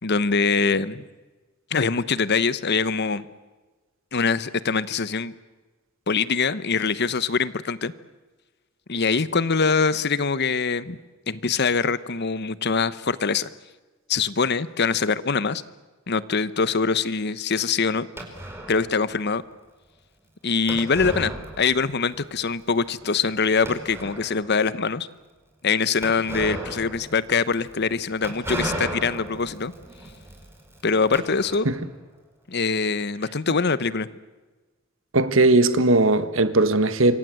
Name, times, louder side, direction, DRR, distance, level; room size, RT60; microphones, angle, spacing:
voice 1, 0.0-1.0 1.7-3.3 4.1-5.3 6.1-7.9 8.9-11.0 11.3-13.5 14.1-15.6 16.1-18.1 18.7-19.4 20.4-21.3 21.6-25.1 25.6-29.7 30.8-31.7 32.5-34.1, left 5 dB, 55° left, 1.0 m, -23 dB
sound 1, 18.2-19.0 20.7-22.0 22.3-22.4 23.0-23.1 23.6-24.5 26.0-31.9, right 1 dB, 10° right, 4.8 m, -35 dB
voice 2, 35.1-37.2, right 2 dB, 70° right, 1.6 m, -18 dB
27.0 x 24.0 x 7.8 m
head